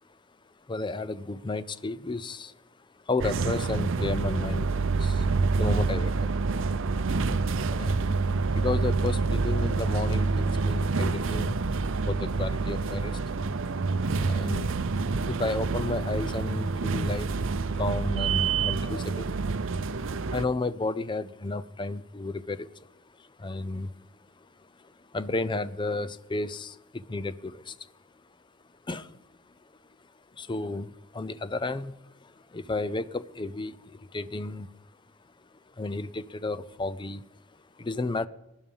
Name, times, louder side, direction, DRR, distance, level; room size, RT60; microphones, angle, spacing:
voice 1, 0.7-2.6 3.1-5.3 5.5-6.3 7.7-11.6 12.0-13.2 14.3-14.7 15.3-17.3 17.7-19.3 20.3-22.9 23.2-23.9 24.8-27.8 28.9-29.2 30.3-34.7 35.8-37.3 37.8-38.3, left 2 dB, 20° left, 0.5 m, -33 dB
sound 1, 3.2-20.4, right 4 dB, 60° right, 0.6 m, -27 dB
18.5 x 11.0 x 5.4 m
head